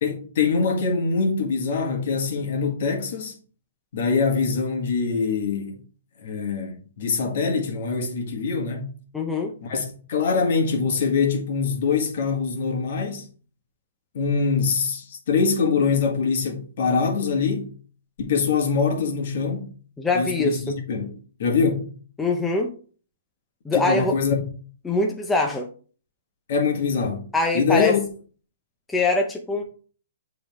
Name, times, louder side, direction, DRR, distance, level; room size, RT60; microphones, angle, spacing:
voice 1, 0.0-3.4 3.9-5.8 6.2-8.9 9.6-13.3 14.1-17.7 18.2-19.7 20.1-21.9 23.7-24.5 26.5-27.2 27.5-28.0, left 5 dB, 55° left, 1.7 m, -24 dB
voice 2, 9.1-9.5 20.0-20.7 22.2-22.7 23.6-24.1 24.8-25.7 27.3-27.9 28.9-29.6, left 3 dB, 5° left, 0.6 m, -23 dB
7.3 x 3.9 x 3.5 m
hypercardioid pair, 155°, 0 cm